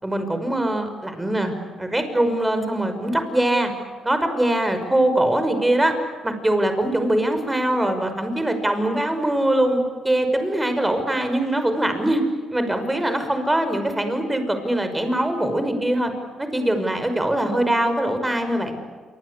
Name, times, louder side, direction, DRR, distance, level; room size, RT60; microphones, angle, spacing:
voice 1, 0.0-3.7 4.0-5.9 6.2-12.2 12.5-16.1 16.4-18.8, right 1 dB, 10° right, 7 dB, 5.8 m, -22 dB
28.0 x 24.5 x 8.4 m, 1.5 s
cardioid pair, 90°, 0 cm